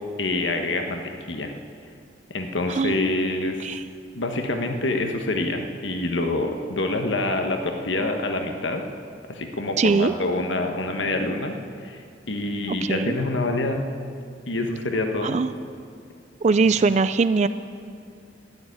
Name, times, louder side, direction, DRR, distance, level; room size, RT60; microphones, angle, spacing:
voice 1, 0.2-1.5 2.3-3.8 4.1-8.8 9.3-13.8 14.5-15.4, left 2 dB, 80° left, 4 dB, 1.3 m, -26 dB
voice 2, 9.8-10.1 12.7-13.2 15.2-15.5 16.4-17.5, right 4 dB, 40° right, 13 dB, 0.4 m, -21 dB
13.0 x 10.5 x 9.6 m, 2.3 s
head